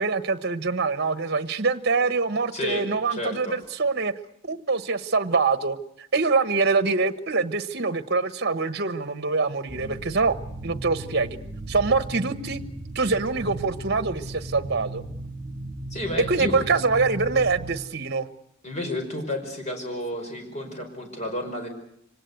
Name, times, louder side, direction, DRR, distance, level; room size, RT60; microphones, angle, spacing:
voice 1, 0.0-4.1 4.4-5.8 6.1-10.4 10.6-11.4 11.7-12.6 12.9-15.0 16.3-18.3, right 4 dB, 55° right, 12 dB, 1.2 m, -24 dB
voice 2, 2.5-3.6 15.9-16.6 18.6-21.7, left 1 dB, 35° left, 4 dB, 5.3 m, -31 dB
sound 1, 9.7-17.8, right 2 dB, 25° right, 4.7 m, -36 dB
25.5 x 18.5 x 8.2 m, 0.73 s
head